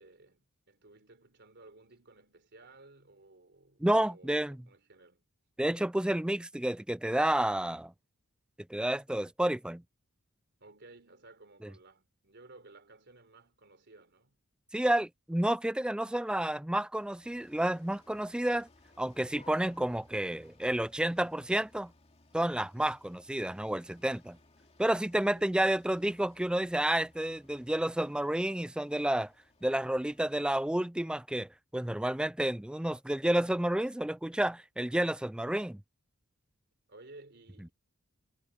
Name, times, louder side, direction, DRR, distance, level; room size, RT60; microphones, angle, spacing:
voice 1, 0.0-5.3 10.6-14.4 25.3-25.6 36.9-37.7, right 2 dB, 55° right, 4.1 m, -56 dB
voice 2, 3.8-4.6 5.6-7.9 8.7-9.8 14.7-18.7 19.0-21.9 22.3-24.4 24.8-29.3 29.6-35.8, right 1 dB, 5° right, 0.3 m, -30 dB
sound 1, 17.0-30.5, left 2 dB, 30° left, 2.7 m, -62 dB
head